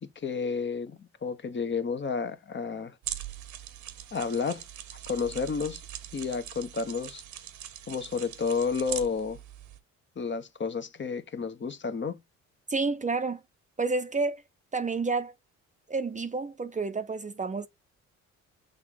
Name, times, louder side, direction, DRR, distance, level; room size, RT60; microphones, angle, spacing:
voice 1, 0.0-3.0 4.1-4.6 5.1-5.8 6.1-7.2 7.9-9.4 10.2-12.2, left 5 dB, 40° left, 1.1 m, -31 dB
sound 1, 3.0-9.8, right 11 dB, 75° right, 1.0 m, -41 dB
voice 2, 12.7-13.4 13.8-14.4 14.7-15.3 15.9-17.7, right 4 dB, 25° right, 0.7 m, -29 dB
6.6 x 3.7 x 3.9 m
cardioid pair, 90°, 30 cm